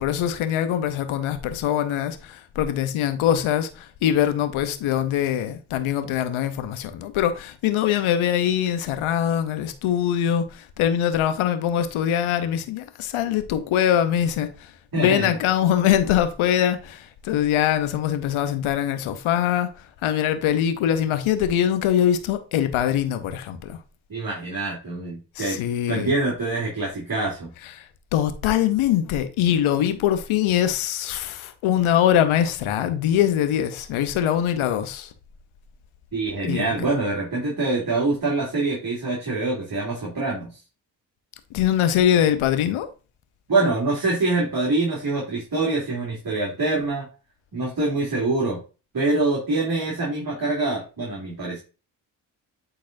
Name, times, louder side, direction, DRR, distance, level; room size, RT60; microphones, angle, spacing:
voice 1, 0.0-14.7 15.0-19.7 20.0-23.8 25.4-26.2 27.8-27.9 28.1-35.1 36.4-36.7 41.5-42.9, left 10 dB, 80° left, 0.9 m, -23 dB
voice 2, 14.9-15.3 24.1-25.6 25.9-27.5 36.1-40.5 43.5-47.1 47.5-48.6 48.9-51.6, right 2 dB, 45° right, 2.9 m, -25 dB
8.8 x 4.1 x 2.6 m
supercardioid pair, 45°, 48 cm